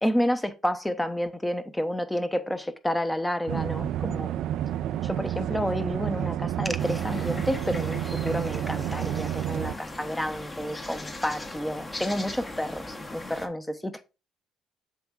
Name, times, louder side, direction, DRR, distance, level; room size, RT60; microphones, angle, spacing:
voice 1, 0.0-4.3 5.0-14.0, equal, 5° left, 1.0 m, -30 dB
sound 1, 3.5-9.7, right 11 dB, 75° right, 0.4 m, -30 dB
sound 2, 6.8-13.5, left 2 dB, 25° left, 1.5 m, -39 dB
7.7 x 3.6 x 4.8 m
supercardioid pair, 75°, 0 cm